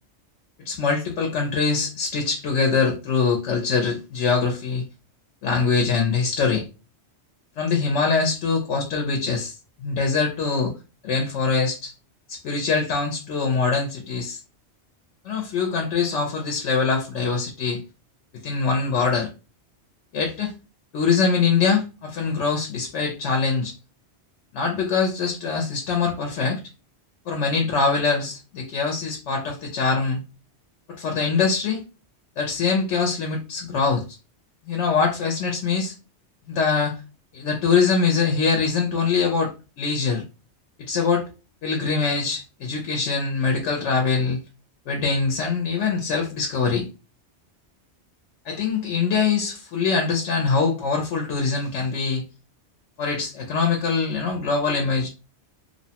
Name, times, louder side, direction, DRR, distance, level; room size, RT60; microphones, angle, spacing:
voice 1, 0.6-4.8 5.4-6.6 7.6-10.7 11.0-11.9 12.3-14.4 15.2-17.8 18.4-19.3 20.1-20.5 20.9-23.7 24.5-26.6 27.3-30.2 30.9-31.8 32.4-34.0 34.7-35.9 36.5-37.0 37.3-39.5 39.8-40.2 40.8-41.2 41.6-44.4 44.9-46.9 48.5-52.2 53.0-55.1, left 5 dB, 80° left, 2 dB, 0.9 m, -23 dB
2.8 x 2.1 x 2.8 m, 0.31 s
omnidirectional pair, 1.2 m